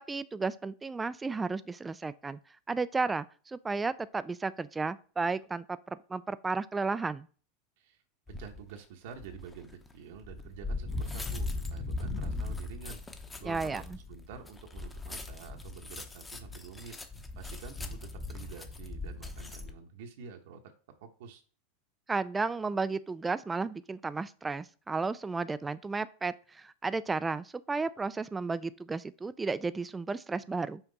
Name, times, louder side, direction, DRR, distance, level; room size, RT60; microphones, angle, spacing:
voice 1, 0.0-2.4 2.7-5.8 6.1-7.3 13.4-13.8 22.1-30.8, right 4 dB, 15° right, 0.3 m, -33 dB
sound 1, 8.3-8.6 9.2-19.7, left 3 dB, 10° left, 0.8 m, -39 dB
voice 2, 8.3-13.0 13.4-16.9 17.4-20.6 21.0-21.4, right 6 dB, 70° right, 1.0 m, -48 dB
5.8 x 4.4 x 4.0 m
supercardioid pair, 120°, 0 cm